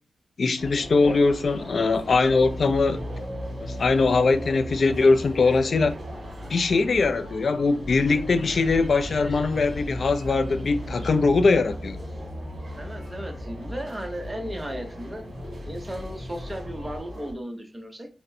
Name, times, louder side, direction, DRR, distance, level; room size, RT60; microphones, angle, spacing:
voice 1, 0.4-3.0 3.8-5.9 6.5-12.0, left 3 dB, 65° left, 0.4 m, -21 dB
sound 1, 0.6-17.3, right 1 dB, 55° right, 1.5 m, -40 dB
sound 2, 2.2-17.0, left 1 dB, 85° left, 0.8 m, -38 dB
voice 2, 12.8-15.2 15.6-18.1, right 1 dB, 20° right, 0.8 m, -35 dB
4.1 x 2.1 x 2.6 m
cardioid pair, 70°, 0 cm